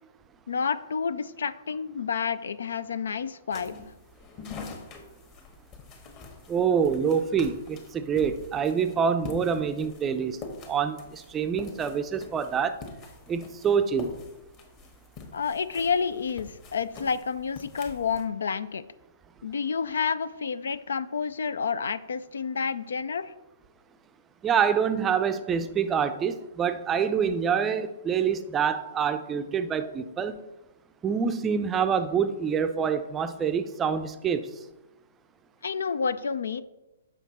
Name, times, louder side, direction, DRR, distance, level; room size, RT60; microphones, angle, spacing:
voice 1, 0.5-3.8 15.3-18.8 19.4-23.3 35.6-36.6, left 6 dB, 65° left, 15 dB, 0.4 m, -29 dB
sound 1, 3.5-18.2, left 4 dB, 30° left, 1.3 m, -45 dB
voice 2, 6.5-10.4 10.7-12.8 13.3-14.2 24.4-30.4 31.0-34.5, right 7 dB, 15° right, 9 dB, 0.5 m, -26 dB
7.1 x 5.6 x 4.1 m, 1.0 s
figure-of-eight pair, 120°, 0 cm